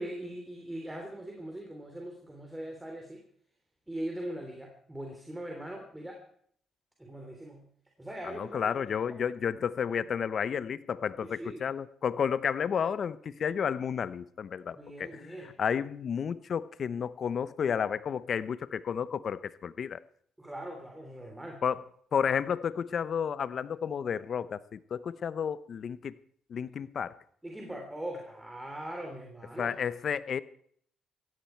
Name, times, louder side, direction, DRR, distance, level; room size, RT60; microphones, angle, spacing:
voice 1, 0.0-3.2 3.9-6.2 7.0-7.7 8.0-8.7 11.2-11.6 14.8-15.5 20.4-21.6 27.4-29.7, right 1 dB, 10° right, 2 dB, 3.3 m, -41 dB
voice 2, 8.4-15.2 15.6-20.0 21.6-21.8 22.1-26.1 26.5-27.1 29.6-30.4, left 7 dB, 55° left, 16 dB, 0.9 m, -31 dB
16.0 x 16.0 x 4.6 m, 0.62 s
cardioid pair, 90°, 0 cm